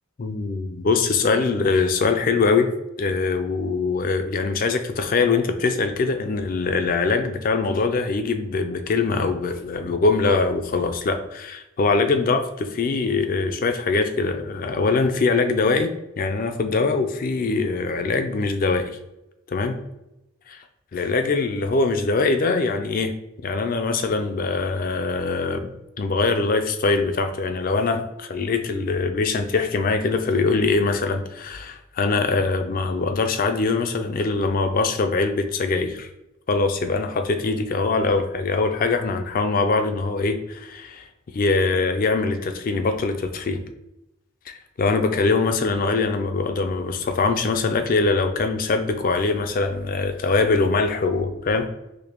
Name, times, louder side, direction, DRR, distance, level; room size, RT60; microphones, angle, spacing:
voice 1, 0.2-2.7 3.0-15.9 16.2-18.9 19.5-19.8 20.5-20.6 20.9-23.1 23.4-25.6 26.0-36.1 36.5-41.1 41.3-43.6 44.5-51.7, left 3 dB, 40° left, 8 dB, 0.3 m, -22 dB
4.9 x 2.1 x 2.9 m, 0.91 s
head